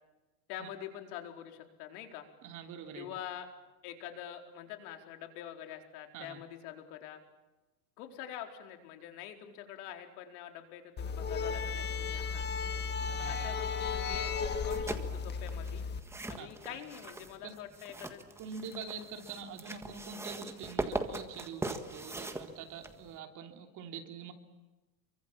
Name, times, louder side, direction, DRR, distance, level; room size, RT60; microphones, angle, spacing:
voice 1, 0.5-2.2 3.0-3.5 3.8-7.2 8.0-12.5 13.3-15.8 16.3-18.2, left 10 dB, 60° left, 4 dB, 4.4 m, -45 dB
voice 2, 2.4-3.1 6.1-6.4 13.0-13.5 16.3-16.8 17.4-17.5 18.4-24.3, right 6 dB, 35° right, 4 dB, 3.3 m, -45 dB
sound 1, 11.0-16.0, left 5 dB, 20° left, 1.5 m, -34 dB
sound 2, 14.5-23.2, right 2 dB, 5° right, 1.6 m, -41 dB
28.0 x 24.0 x 7.3 m, 1.1 s
supercardioid pair, 150°, 50 cm